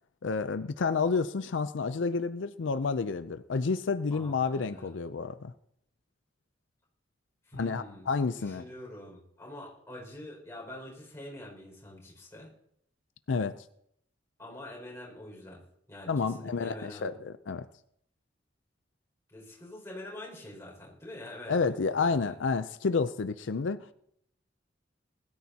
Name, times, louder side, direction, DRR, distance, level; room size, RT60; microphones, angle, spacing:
voice 1, 0.2-5.5 7.5-8.6 13.3-13.6 16.1-17.7 21.5-23.9, left 4 dB, 85° left, 12 dB, 0.5 m, -30 dB
voice 2, 4.1-5.0 7.4-8.1 8.4-12.5 14.4-15.6 15.9-17.1 19.3-21.7 22.0-22.3, left 1 dB, 15° left, -3 dB, 5.6 m, -45 dB
21.0 x 13.5 x 2.9 m, 0.72 s
head